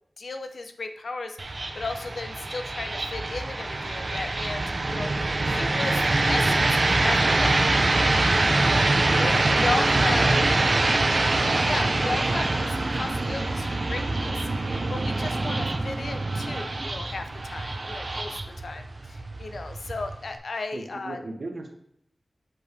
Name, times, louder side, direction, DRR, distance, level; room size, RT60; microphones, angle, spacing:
voice 1, 0.2-7.7 8.4-8.8 9.2-10.3 11.3-14.4 14.9-21.2, left 3 dB, 85° left, 7 dB, 0.6 m, -35 dB
sound 1, 1.4-20.4, right 2 dB, 60° right, 0.7 m, -24 dB
voice 2, 9.6-10.5 20.7-21.7, right 2 dB, 80° right, 3 dB, 1.0 m, -36 dB
7.7 x 4.8 x 3.4 m, 0.75 s
cardioid pair, 50°, 0 cm